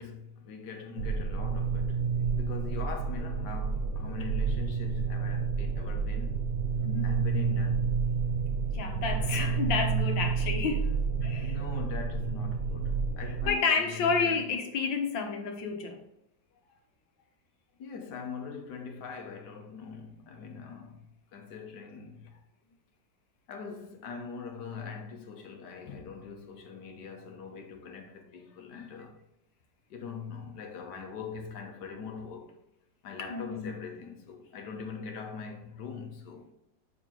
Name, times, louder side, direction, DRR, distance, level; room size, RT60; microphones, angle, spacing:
voice 1, 0.0-2.0 2.4-6.4 7.0-8.0 9.0-9.7 11.3-14.4 16.7-16.8 17.8-21.0 21.3-22.4 23.5-29.2 29.9-32.6 33.0-36.5, left 5 dB, 70° left, 1.6 m, -42 dB
sound 1, 1.0-13.5, right 5 dB, 80° right, 0.5 m, -30 dB
voice 2, 6.8-7.1 8.7-11.6 13.5-16.0 33.3-33.8, left 5 dB, 90° left, 1.8 m, -30 dB
7.3 x 4.6 x 3.8 m
omnidirectional pair, 2.0 m